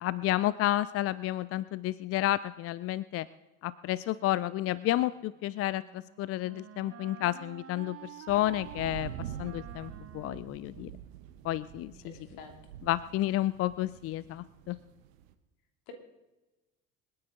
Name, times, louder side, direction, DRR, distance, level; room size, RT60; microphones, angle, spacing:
voice 1, 0.0-3.3 3.6-9.1 9.4-10.9 11.4-11.9 12.9-14.8, left 14 dB, 35° left, 19 dB, 0.4 m, -31 dB
Wind instrument woodwind instrument, 5.5-11.3, right 10 dB, 35° right, 0.9 m, -49 dB
sound 1, 8.3-15.3, right 10 dB, 65° right, 1.1 m, -46 dB
voice 2, 11.9-12.5 15.9-16.0, left 6 dB, 60° left, 5 dB, 2.8 m, -49 dB
27.5 x 9.8 x 3.8 m, 1.1 s
figure-of-eight pair, 60°, 42 cm